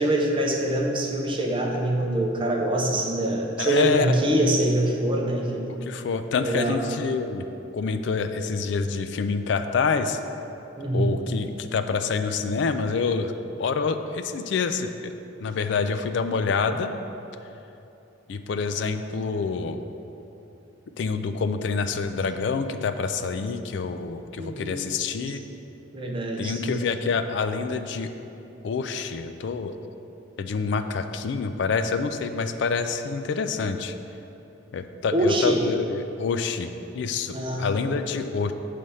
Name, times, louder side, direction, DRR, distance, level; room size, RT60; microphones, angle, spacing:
voice 1, 0.0-5.7 6.4-6.8 10.8-11.2 24.4-24.9 25.9-26.8 35.1-35.6 37.3-37.7, right 1 dB, 25° right, 0 dB, 0.6 m, -24 dB
voice 2, 3.6-4.1 5.7-7.4 7.7-10.2 10.9-13.3 13.6-15.1 15.4-16.9 18.3-19.8 21.0-25.4 26.4-28.1 28.6-29.8 30.4-33.9 34.7-38.5, left 5 dB, 60° left, 9 dB, 0.3 m, -27 dB
7.5 x 3.4 x 5.4 m, 2.9 s
head